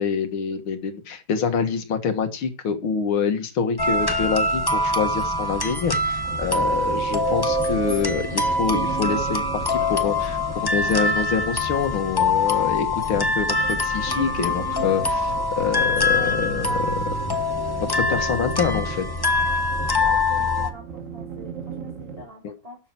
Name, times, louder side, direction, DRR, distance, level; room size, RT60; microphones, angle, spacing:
voice 1, 0.0-17.0 17.8-19.1 22.4-22.5, left 6 dB, 90° left, 8 dB, 2.4 m, -26 dB
sound 1, 3.8-20.7, left 2 dB, 15° left, 1.0 m, -24 dB
sound 2, 6.2-22.2, right 6 dB, 40° right, 2.3 m, -35 dB
voice 2, 15.7-16.3 16.6-16.8 19.9-22.8, left 1 dB, 15° right, -4 dB, 3.9 m, -43 dB
12.5 x 7.3 x 5.9 m, 0.32 s
omnidirectional pair, 2.2 m